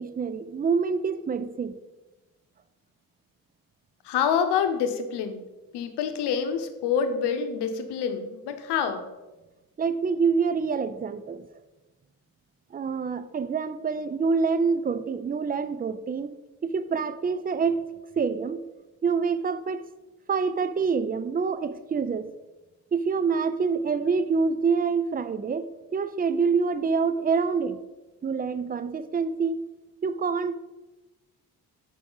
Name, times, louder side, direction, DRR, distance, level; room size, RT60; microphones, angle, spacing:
voice 1, 0.0-1.8 9.8-11.5 12.7-16.3 16.6-17.9 18.2-18.7 19.0-19.9 20.3-22.3 22.9-27.8 28.2-29.7 30.0-30.5, right 5 dB, 25° right, 13 dB, 0.5 m, -26 dB
voice 2, 4.0-5.4 5.7-9.0, left 7 dB, 85° left, 8 dB, 0.8 m, -27 dB
6.3 x 5.8 x 3.9 m, 1.1 s
supercardioid pair, 55°, 39 cm